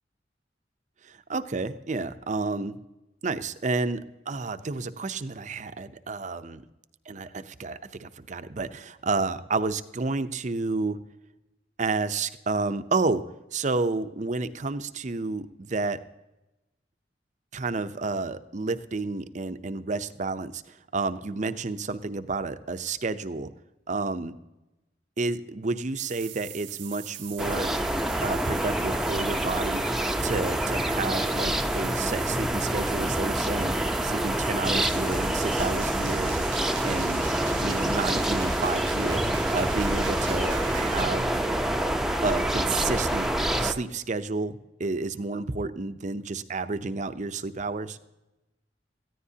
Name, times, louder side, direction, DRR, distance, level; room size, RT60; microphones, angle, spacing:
voice 1, 1.0-2.8 3.2-4.0 4.3-6.6 7.1-11.0 11.8-13.2 13.5-16.0 17.5-23.5 23.9-24.3 25.2-27.7 28.2-29.8 30.2-33.7 34.0-36.4 36.8-37.3 37.6-39.2 39.5-41.4 42.2-43.3 43.6-48.0, right 3 dB, 40° right, 11 dB, 0.6 m, -30 dB
sound 1, 26.0-41.0, right 12 dB, 90° right, 0.8 m, -41 dB
sound 2, 27.4-43.7, right 1 dB, ahead, 0.7 m, -27 dB
19.5 x 14.5 x 2.8 m, 0.99 s
head